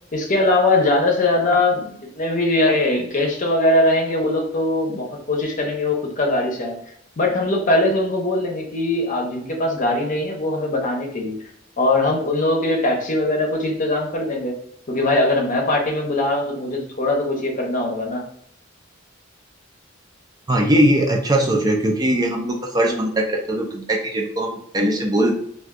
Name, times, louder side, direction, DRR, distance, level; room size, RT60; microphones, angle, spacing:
voice 1, 0.1-6.8 7.2-11.4 11.8-14.5 14.9-18.2, left 2 dB, 40° left, 1 dB, 0.7 m, -21 dB
voice 2, 20.5-25.3, right 1 dB, 20° right, 0 dB, 0.4 m, -20 dB
2.5 x 2.3 x 3.5 m, 0.68 s
head